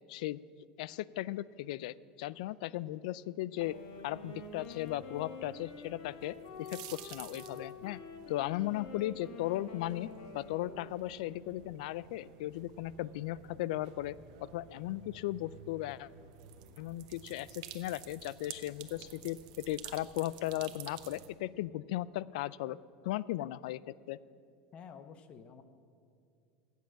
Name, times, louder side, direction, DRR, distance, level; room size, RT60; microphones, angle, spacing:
voice 1, 0.1-0.4 0.8-3.8 4.0-8.0 8.3-14.1 14.4-16.1 16.8-22.8 23.0-24.2, left 15 dB, 75° left, 20 dB, 0.3 m, -37 dB
Wind instrument woodwind instrument, 3.5-11.6, left 4 dB, 90° left, 1.9 m, -48 dB
sound 1, 3.6-21.3, right 10 dB, 65° right, 0.9 m, -53 dB
voice 2, 24.7-25.6, left 6 dB, 30° left, 11 dB, 0.7 m, -50 dB
14.5 x 8.3 x 7.4 m, 2.4 s
supercardioid pair, 170°, 4 cm